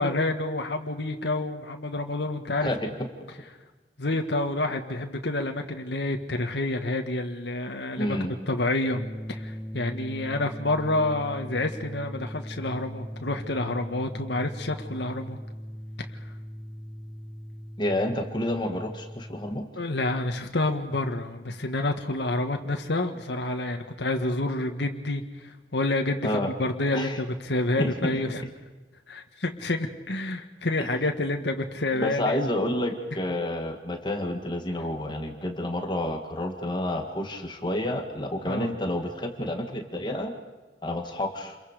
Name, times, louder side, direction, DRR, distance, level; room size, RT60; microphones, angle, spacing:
voice 1, 0.0-2.7 4.0-9.0 9.3-15.4 19.8-28.4 29.1-32.4 38.4-38.7, left 2 dB, 80° left, 4 dB, 1.7 m, -28 dB
voice 2, 8.0-8.3 17.8-19.7 26.2-26.5 26.9-27.2 27.8-27.9 30.8-30.9 32.0-40.3 40.8-41.6, left 1 dB, 25° left, 4 dB, 2.0 m, -29 dB
sound 1, 8.9-19.5, equal, 5° left, 0.7 m, -39 dB
29.0 x 22.5 x 5.1 m, 1.2 s
head